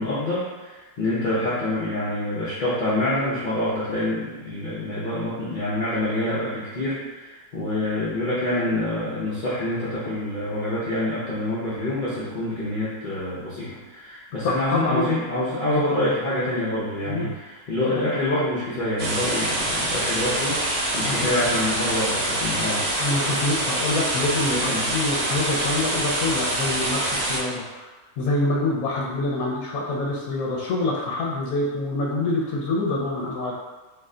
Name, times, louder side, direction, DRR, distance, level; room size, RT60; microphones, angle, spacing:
voice 1, 0.0-23.0 24.5-24.8, left 1 dB, 55° left, -9 dB, 0.6 m, -26 dB
voice 2, 14.4-15.1 15.7-16.1 17.0-17.3 18.0-18.1 21.0-21.1 21.5-21.6 23.0-27.9 28.2-33.6, left 2 dB, 80° left, -3 dB, 1.0 m, -26 dB
sound 1, 19.0-27.4, right 1 dB, 60° right, 1.0 m, -25 dB
2.6 x 2.1 x 3.6 m, 1.2 s
omnidirectional pair, 1.5 m